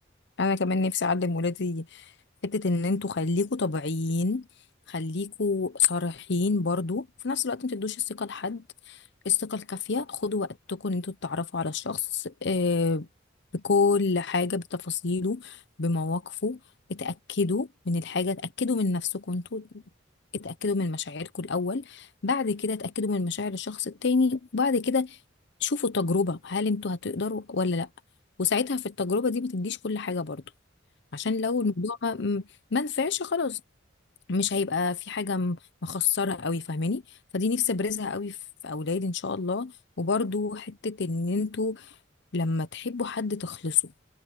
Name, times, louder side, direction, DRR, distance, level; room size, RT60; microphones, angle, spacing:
voice 1, 0.4-2.1 2.4-4.5 4.9-13.1 13.5-16.6 16.9-19.8 20.3-25.2 25.6-27.9 28.4-30.4 31.1-33.6 34.3-37.0 37.3-38.4 38.6-41.9 42.3-43.9, left 4 dB, 65° left, 0.8 m, -28 dB
head